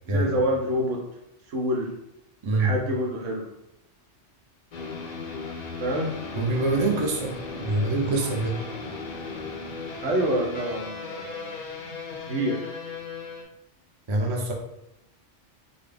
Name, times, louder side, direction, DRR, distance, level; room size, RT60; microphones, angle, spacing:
voice 1, 0.1-1.0 1.5-1.9 2.5-3.5 5.8-6.1 10.0-11.6 12.3-12.7, equal, 90° right, 0 dB, 1.1 m, -27 dB
voice 2, 2.4-2.7 6.3-8.6 14.1-14.5, right 2 dB, 35° right, 0 dB, 0.5 m, -25 dB
sound 1, 4.7-13.4, left 4 dB, 55° left, 0.5 m, -36 dB
3.8 x 2.4 x 3.4 m, 0.85 s
omnidirectional pair, 1.2 m